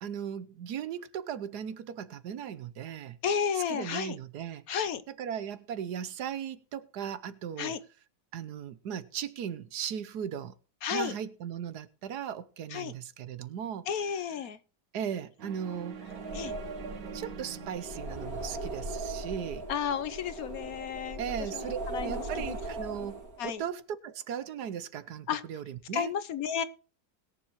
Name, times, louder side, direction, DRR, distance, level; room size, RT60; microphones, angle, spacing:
voice 1, 0.0-3.2 3.6-4.6 5.1-7.8 8.3-10.5 10.9-13.9 14.9-16.0 17.1-19.7 21.2-26.1, right 8 dB, 70° right, 1.3 m, -37 dB
voice 2, 3.2-4.2 4.7-5.0 7.6-7.8 10.8-11.2 12.7-12.9 13.9-14.6 16.3-16.5 19.7-21.2 21.5-22.2 23.4-23.6 25.3-25.4 25.9-26.6, left 8 dB, 60° left, 1.2 m, -32 dB
sound 1, 15.4-19.6, right 6 dB, 90° right, 2.1 m, -46 dB
sound 2, 16.0-23.5, right 2 dB, 55° right, 2.6 m, -39 dB
20.5 x 7.3 x 3.0 m
omnidirectional pair, 1.9 m